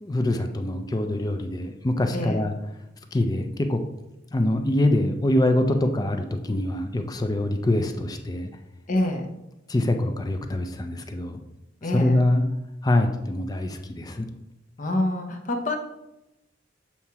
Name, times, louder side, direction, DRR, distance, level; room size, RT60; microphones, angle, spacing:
voice 1, 0.0-2.5 3.1-3.8 4.3-8.5 9.7-11.4 11.9-12.4 12.8-14.3, left 1 dB, 20° left, 6 dB, 0.4 m, -24 dB
voice 2, 2.1-2.4 8.9-9.3 11.8-12.2 14.8-15.8, left 1 dB, 45° left, 3 dB, 0.8 m, -26 dB
7.2 x 2.8 x 4.7 m, 0.92 s
head